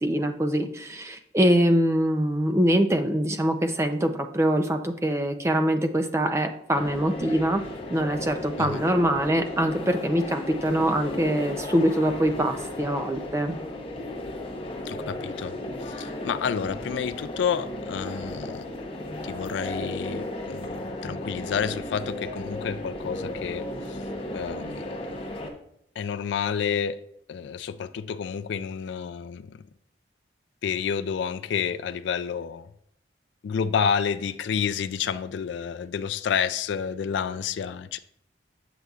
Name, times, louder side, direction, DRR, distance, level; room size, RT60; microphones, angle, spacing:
voice 1, 0.0-7.6 7.9-13.6, right 1 dB, 15° right, 0.4 m, -24 dB
sound 1, 6.7-25.5, left 1 dB, 30° left, 0.8 m, -35 dB
voice 2, 14.9-15.5 16.0-18.6 19.2-20.8 21.0-24.0 24.3-24.9 26.0-27.0 27.3-29.6 30.6-32.7 33.4-38.0, left 7 dB, 75° left, 0.3 m, -29 dB
7.6 x 6.6 x 2.4 m
head